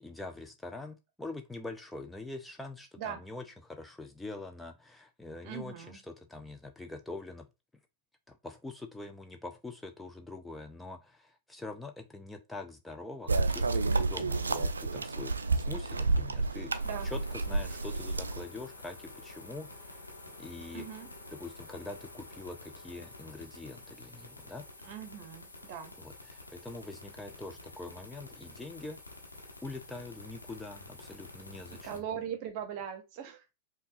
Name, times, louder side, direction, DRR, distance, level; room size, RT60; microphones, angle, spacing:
voice 1, 0.0-5.7 6.1-7.5 8.3-16.7 17.0-20.0 20.4-20.8 21.4-24.7 26.0-29.0 29.6-31.9, left 2 dB, 5° left, 0.4 m, -44 dB
voice 2, 3.0-3.3 5.4-6.0 16.8-17.1 20.7-21.1 24.8-26.0 31.8-33.5, right 9 dB, 45° right, 0.8 m, -40 dB
sound 1, 13.3-18.4, right 3 dB, 75° right, 0.3 m, -30 dB
sound 2, 16.8-32.0, left 2 dB, 80° left, 0.9 m, -49 dB
5.3 x 2.3 x 2.6 m
figure-of-eight pair, 90°, 0 cm